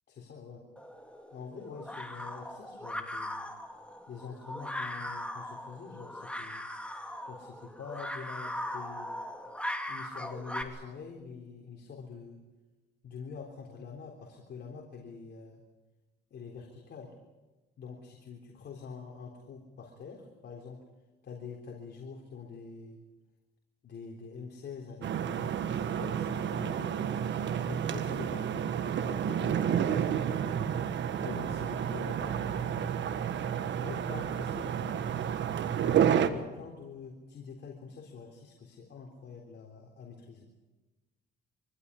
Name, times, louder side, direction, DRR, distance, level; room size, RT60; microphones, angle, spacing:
voice 1, 0.1-0.6 1.3-3.5 4.1-6.6 7.2-9.2 9.9-12.4 13.0-15.6 16.3-17.1 17.8-20.8 21.2-23.0 23.8-27.1 27.6-28.7 29.0-30.7 31.2-32.9 33.8-35.1 35.8-40.5, left 5 dB, 60° left, 1 dB, 3.7 m, -45 dB
sound 1, 0.8-10.6, left 1 dB, 5° left, 2.8 m, -39 dB
sound 2, 25.0-36.3, right 9 dB, 65° right, 1.5 m, -30 dB
24.5 x 16.0 x 9.8 m, 1.1 s
cardioid pair, 90°, 20 cm